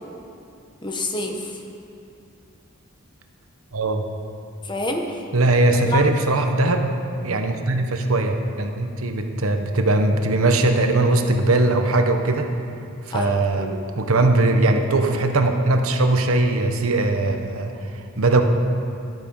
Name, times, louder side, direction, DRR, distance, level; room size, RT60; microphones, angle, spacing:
voice 1, 0.8-1.5 4.6-5.2 5.9-6.1 13.1-13.8, left 1 dB, 20° left, 2 dB, 1.1 m, -27 dB
voice 2, 3.7-4.0 5.3-6.9 7.2-12.5 13.1-17.7 18.2-18.4, right 2 dB, 80° right, 5 dB, 1.1 m, -20 dB
13.5 x 11.5 x 5.5 m, 2.5 s
head